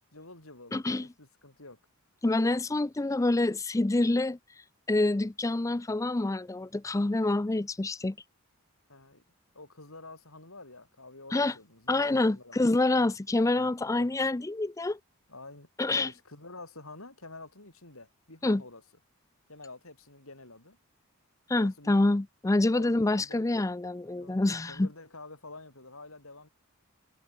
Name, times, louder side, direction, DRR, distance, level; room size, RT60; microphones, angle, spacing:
voice 1, 0.1-1.8 8.9-9.2 9.5-13.1 13.9-14.1 15.3-15.7 16.0-18.8 19.5-20.8 21.5-22.1 22.7-23.4 24.2-26.5, left 2 dB, 70° left, 7.5 m, -48 dB
voice 2, 0.7-1.1 2.2-4.4 4.9-8.2 11.3-11.5 11.9-15.0 15.8-16.1 18.4-18.6 21.5-24.9, left 2 dB, 15° left, 0.4 m, -27 dB
head